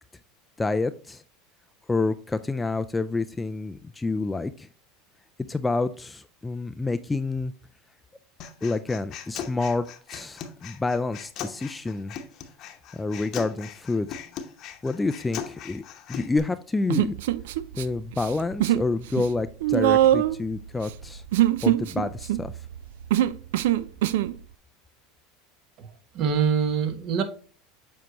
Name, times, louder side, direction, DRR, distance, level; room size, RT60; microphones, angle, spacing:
voice 1, 0.6-1.2 1.9-4.7 5.5-7.5 8.6-12.1 12.9-14.1 14.8-15.8 16.1-17.1 17.7-21.2 21.6-22.5, left 3 dB, 15° left, 0.3 m, -28 dB
Human voice, 8.4-16.4, left 8 dB, 50° left, 0.9 m, -39 dB
Human voice 2, 16.9-17.8 18.1-18.9 19.1-24.3, right 13 dB, 80° right, 0.3 m, -23 dB
voice 2, 26.1-27.2, right 6 dB, 50° right, 1.0 m, -24 dB
7.4 x 4.6 x 2.9 m
supercardioid pair, 115°, 0 cm